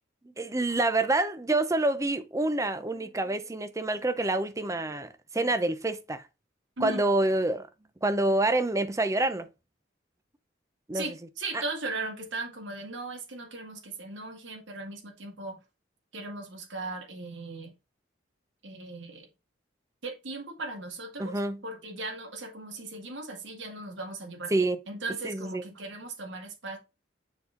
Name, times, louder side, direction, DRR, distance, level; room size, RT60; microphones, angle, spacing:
voice 1, 0.4-6.2 6.8-7.7 8.0-9.5 10.9-11.1 11.5-11.6 21.2-21.6 24.5-24.8 25.2-25.6, right 2 dB, 15° right, 0.6 m, -27 dB
voice 2, 10.9-15.6 16.1-17.7 18.6-19.3 20.0-26.8, right 2 dB, 90° right, 1.9 m, -38 dB
7.1 x 4.2 x 3.8 m
head